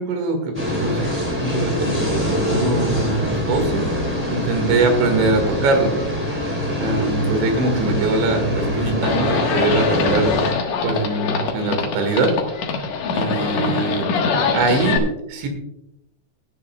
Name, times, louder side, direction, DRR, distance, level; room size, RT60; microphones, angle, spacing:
voice 1, 0.0-3.9 4.3-5.9 6.3-6.4 6.8-12.3 13.1-14.1 14.5-15.5, right 3 dB, 75° right, 5 dB, 4.1 m, -22 dB
sound 1, 0.5-10.5, left 1 dB, 5° right, 2.1 m, -24 dB
Livestock farm animals working animals, 9.0-15.0, left 5 dB, 70° left, 1.7 m, -23 dB
18.5 x 10.5 x 2.3 m, 0.86 s
omnidirectional pair, 5.3 m